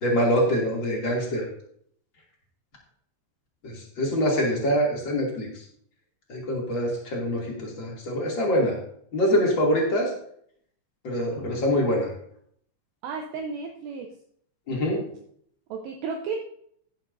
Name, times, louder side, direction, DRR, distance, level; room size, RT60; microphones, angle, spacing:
voice 1, 0.0-1.4 3.6-5.5 6.3-8.8 9.1-10.1 11.0-12.1 14.7-15.0, equal, 35° left, -2 dB, 2.3 m, -24 dB
voice 2, 13.0-14.1 15.7-16.4, right 5 dB, 75° right, 2 dB, 2.8 m, -33 dB
18.0 x 7.2 x 2.6 m, 0.65 s
omnidirectional pair, 5.6 m